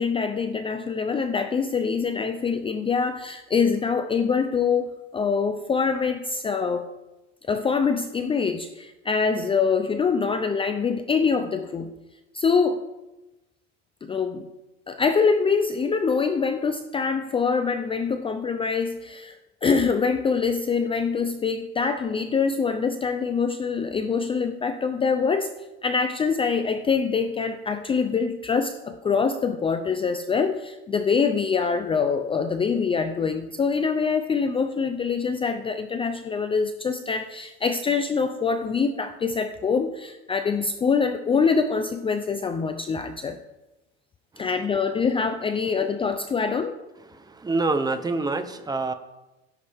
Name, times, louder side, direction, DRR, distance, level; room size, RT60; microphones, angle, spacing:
voice 1, 0.0-6.9 7.5-11.9 12.3-12.8 14.0-14.5 14.9-25.5 25.8-43.4 44.4-46.8, left 5 dB, 15° left, 8 dB, 0.6 m, -24 dB
voice 2, 47.3-48.9, right 3 dB, 10° right, 10 dB, 0.8 m, -26 dB
17.5 x 10.5 x 3.6 m, 1.0 s
supercardioid pair, 140°, 34 cm